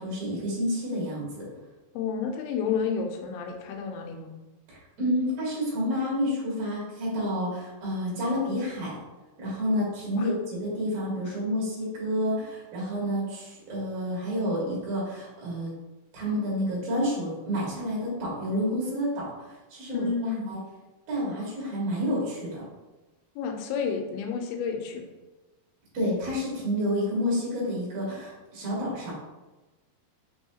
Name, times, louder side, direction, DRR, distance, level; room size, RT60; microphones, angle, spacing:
voice 1, 0.0-1.5 4.7-8.9 9.4-15.7 16.1-20.1 20.5-20.6 21.1-22.6 25.9-29.1, equal, 50° right, -6 dB, 2.1 m, -29 dB
voice 2, 1.9-4.3 10.1-10.3 19.9-20.5 23.4-25.0, left 6 dB, 85° left, 4 dB, 2.3 m, -30 dB
5.4 x 3.1 x 2.7 m, 1.1 s
omnidirectional pair, 4.2 m